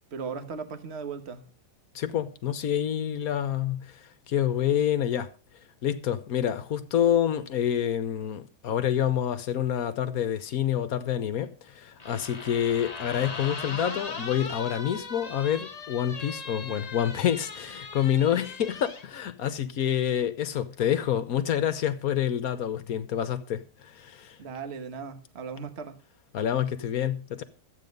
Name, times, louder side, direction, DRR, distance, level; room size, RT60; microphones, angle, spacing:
voice 1, 0.1-1.5 24.4-26.0, right 5 dB, 45° right, 1.4 m, -37 dB
voice 2, 1.9-5.3 5.8-24.4 26.3-27.4, left 10 dB, 65° left, 1.2 m, -27 dB
sound 1, 12.0-19.1, left 4 dB, 30° left, 0.9 m, -39 dB
12.5 x 8.5 x 5.3 m
omnidirectional pair, 1.8 m